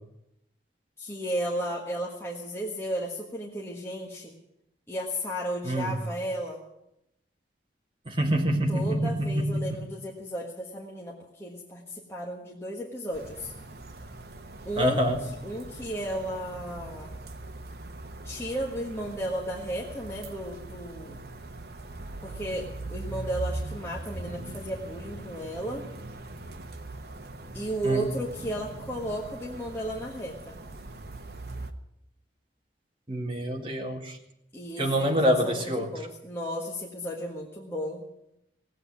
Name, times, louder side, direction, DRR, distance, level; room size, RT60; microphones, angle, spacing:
voice 1, 1.0-4.3 4.9-6.6 8.7-13.5 14.6-15.0 15.4-17.1 18.2-21.2 22.2-25.8 27.5-30.6 34.5-38.0, right 1 dB, 15° left, -3 dB, 1.6 m, -34 dB
voice 2, 5.6-6.0 8.1-9.8 14.8-15.2 27.8-28.0 33.1-34.2 34.8-35.9, equal, 30° right, 1 dB, 2.1 m, -26 dB
sound 1, 13.1-31.7, right 2 dB, 55° right, 1.0 m, -41 dB
17.5 x 8.3 x 9.6 m, 0.82 s
head